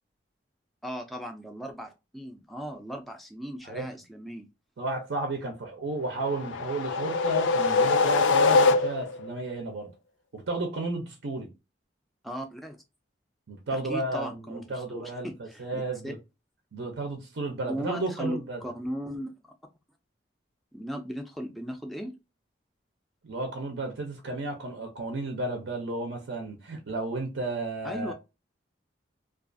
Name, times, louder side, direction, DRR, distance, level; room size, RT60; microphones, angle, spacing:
voice 1, 0.8-4.5 12.2-12.8 13.7-16.1 17.7-19.3 20.7-22.1 27.8-28.1, equal, ahead, 0.3 m, -37 dB
voice 2, 4.8-9.9 10.3-11.5 13.5-16.2 16.7-18.6 23.2-28.1, right 2 dB, 75° right, 0.5 m, -33 dB
sound 1, 6.2-9.3, left 4 dB, 80° left, 0.3 m, -23 dB
2.3 x 2.3 x 2.5 m
head